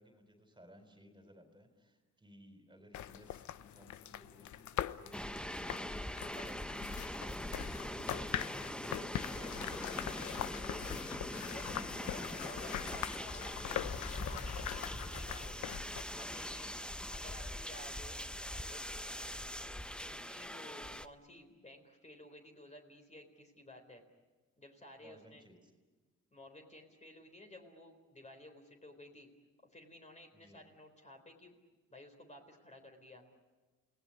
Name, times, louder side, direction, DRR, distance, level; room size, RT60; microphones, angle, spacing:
voice 1, 0.0-9.7 25.0-25.7 30.3-30.6, equal, 15° right, 6 dB, 4.1 m, -60 dB
sound 1, 2.9-16.0, left 12 dB, 75° left, 0.8 m, -42 dB
sound 2, 5.1-21.1, left 1 dB, 5° left, 0.9 m, -42 dB
voice 2, 6.3-6.7 9.4-10.9 11.3-14.6 15.0-15.8 16.1-16.7 17.1-18.2 18.7-18.9 19.9-24.0 24.6-25.5 26.3-29.3 29.7-31.5 31.9-33.2, left 1 dB, 25° left, 4 dB, 4.0 m, -55 dB
29.0 x 18.5 x 9.8 m, 1.3 s
cardioid pair, 90°, 30 cm